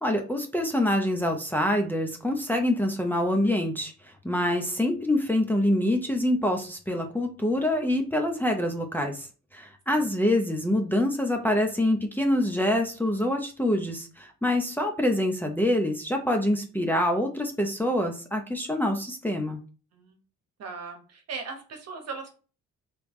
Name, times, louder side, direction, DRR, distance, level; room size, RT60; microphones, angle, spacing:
voice 1, 0.0-3.9 4.2-9.3 9.5-19.6, left 1 dB, 5° left, 2 dB, 0.6 m, -25 dB
voice 2, 20.6-22.3, right 4 dB, 55° right, 4 dB, 1.1 m, -38 dB
3.3 x 3.2 x 3.1 m, 0.36 s
cardioid pair, 90°, 30 cm